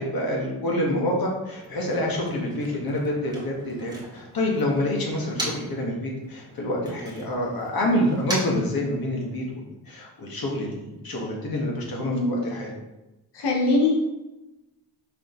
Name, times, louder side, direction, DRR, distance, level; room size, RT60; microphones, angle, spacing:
voice 1, 0.0-12.7, left 1 dB, 60° left, -2 dB, 1.7 m, -27 dB
Motor vehicle (road), 1.4-5.9 6.2-9.5, right 1 dB, 10° right, 1.7 m, -39 dB
voice 2, 13.3-13.9, left 2 dB, 75° left, -1 dB, 1.5 m, -22 dB
5.1 x 5.0 x 3.8 m, 0.99 s
wide cardioid pair, 130°, 41 cm